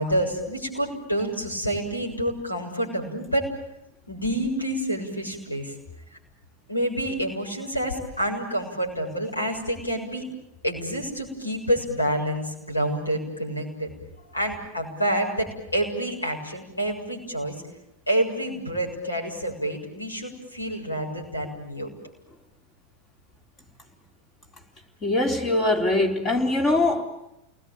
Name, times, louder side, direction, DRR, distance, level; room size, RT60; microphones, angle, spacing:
voice 1, 0.0-3.5 4.1-5.7 6.7-10.2 10.6-13.9 14.3-17.5 18.1-21.9, right 1 dB, 85° left, 7.4 m, -28 dB
voice 2, 25.0-27.0, left 2 dB, 25° left, 4.1 m, -22 dB
29.5 x 20.5 x 9.1 m
figure-of-eight pair, 90°, 0 cm